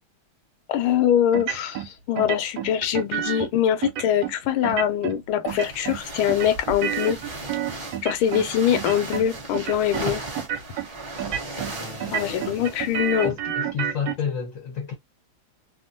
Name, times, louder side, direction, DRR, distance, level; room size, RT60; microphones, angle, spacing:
voice 1, 0.7-7.2 8.0-10.2 12.1-13.4, left 10 dB, 85° left, 1.5 m, -23 dB
sound 1, 1.3-1.9 2.2-3.5 3.8-4.3 4.6-5.2 5.4-6.0 6.3-8.5 8.7-9.3 9.5-10.0 10.3-10.9 11.2-11.7 12.0-14.1, right 10 dB, 75° right, 1.3 m, -29 dB
sound 2, 5.5-13.3, right 2 dB, 25° right, 0.5 m, -36 dB
voice 2, 11.7-12.7 13.2-14.9, left 6 dB, 65° left, 0.8 m, -31 dB
3.5 x 2.1 x 2.5 m
omnidirectional pair, 2.3 m